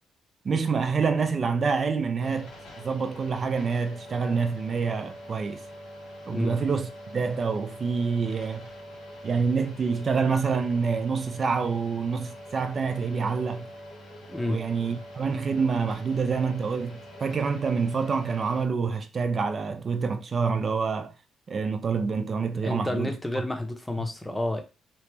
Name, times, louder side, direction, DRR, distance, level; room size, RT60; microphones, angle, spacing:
voice 1, 0.4-2.5 2.8-5.6 6.3-8.7 9.2-13.7 14.5-21.1 21.5-23.1, right 5 dB, 45° right, 0.6 m, -27 dB
sound 1, 2.2-18.7, equal, 85° left, 1.6 m, -44 dB
voice 2, 14.3-14.7 22.6-24.6, left 1 dB, 10° left, 0.8 m, -30 dB
3.1 x 2.8 x 3.4 m
cardioid pair, 90°, 0 cm